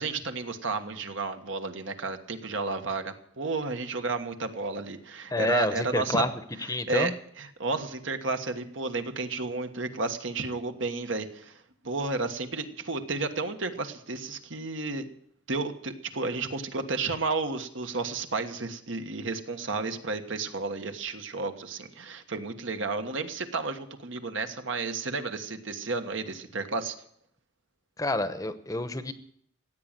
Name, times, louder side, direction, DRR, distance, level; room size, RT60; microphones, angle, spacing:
voice 1, 0.0-6.3 6.9-15.1 15.5-26.9, right 3 dB, 75° right, 7 dB, 1.4 m, -32 dB
voice 2, 5.3-6.3 6.6-7.1 28.0-29.1, left 2 dB, 15° left, 10 dB, 0.9 m, -28 dB
16.0 x 8.8 x 9.0 m, 0.66 s
head